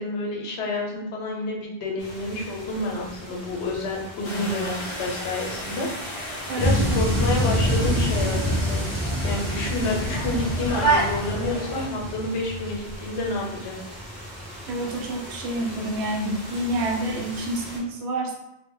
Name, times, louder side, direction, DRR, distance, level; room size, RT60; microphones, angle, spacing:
voice 1, 0.0-8.9 9.2-13.8, left 2 dB, 75° left, -1 dB, 0.9 m, -29 dB
sound 1, 2.0-17.8, equal, ahead, 0.8 m, -41 dB
sound 2, 4.2-11.9, right 2 dB, 35° left, 0.5 m, -31 dB
voice 2, 6.5-7.0 14.7-18.3, right 1 dB, 75° right, 1 dB, 0.8 m, -28 dB
sound 3, 6.6-12.5, equal, 25° right, 0.5 m, -25 dB
2.1 x 2.1 x 3.6 m, 0.88 s
omnidirectional pair, 1.2 m